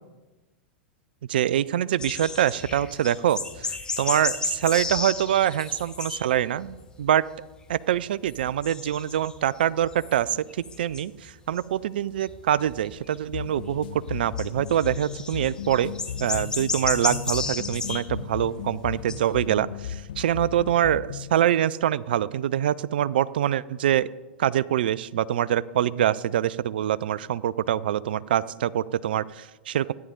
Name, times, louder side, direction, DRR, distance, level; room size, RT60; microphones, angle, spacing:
voice 1, 1.3-3.7 4.0-7.3 7.7-15.9 16.2-24.1 24.4-29.9, right 11 dB, 65° right, 19 dB, 0.4 m, -25 dB
sound 1, 2.0-6.4 6.7-7.2 7.6-8.0 8.3-11.3 11.6-11.7 12.2-13.2 14.4-18.1 18.4-18.5 18.8-19.2, left 4 dB, 15° left, 1.1 m, -33 dB
sound 2, 13.3-21.4, left 9 dB, 60° left, 0.4 m, -36 dB
13.5 x 10.0 x 3.8 m, 1.1 s
figure-of-eight pair, 95°, 6 cm